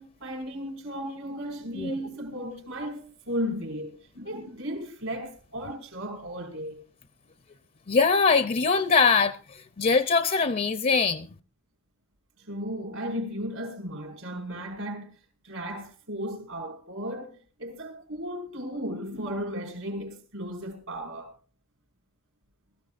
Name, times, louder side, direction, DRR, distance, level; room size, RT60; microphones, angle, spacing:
voice 1, 0.0-6.8 12.5-15.1 15.4-21.3, equal, 75° right, 5.5 m, -35 dB
voice 2, 7.9-11.3, left 4 dB, 40° left, 0.6 m, -22 dB
22.5 x 14.5 x 2.5 m
head